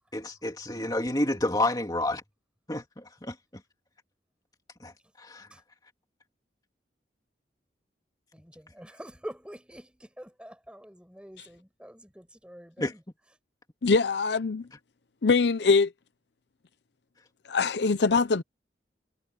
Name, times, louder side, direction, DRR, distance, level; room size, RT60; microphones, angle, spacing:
voice 1, 0.1-2.2 2.7-3.6 4.8-5.5 12.8-12.9, left 1 dB, 20° left, 2.7 m, -30 dB
voice 2, 8.3-13.0, equal, 5° right, 5.6 m, -46 dB
voice 3, 13.8-14.7 15.2-15.9 17.5-18.4, left 4 dB, 75° left, 0.6 m, -23 dB
head